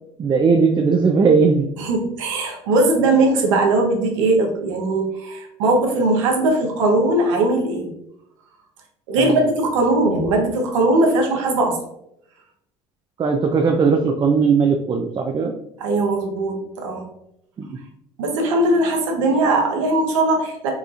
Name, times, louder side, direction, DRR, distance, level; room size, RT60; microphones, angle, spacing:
voice 1, 0.2-1.7 9.2-9.5 13.2-15.5 17.6-17.8, right 5 dB, 30° right, 4 dB, 0.4 m, -18 dB
voice 2, 1.8-7.9 9.1-11.8 15.8-17.1 18.2-20.7, right 2 dB, 85° right, 2 dB, 0.7 m, -19 dB
4.2 x 2.4 x 2.4 m, 0.77 s
hypercardioid pair, 75°, 16 cm